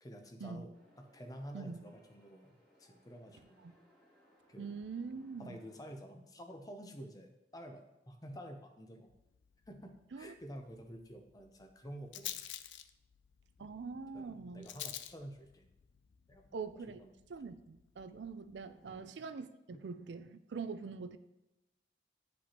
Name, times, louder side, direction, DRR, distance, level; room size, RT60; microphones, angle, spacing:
voice 1, 0.0-0.7 1.0-3.6 4.5-4.7 5.4-9.1 9.7-12.3 13.6-13.8 14.1-15.7 16.3-17.2 18.8-19.1 19.7-19.8, equal, 20° left, 5 dB, 0.7 m, -50 dB
sound 1, 0.7-6.0, equal, 5° left, 2.2 m, -68 dB
voice 2, 4.6-5.6 10.1-10.3 13.6-14.7 16.5-17.0 17.3-21.2, right 5 dB, 75° right, 12 dB, 0.4 m, -44 dB
Rattle, 9.1-19.0, left 12 dB, 85° left, 0.4 m, -51 dB
10.0 x 5.2 x 2.9 m, 0.97 s
head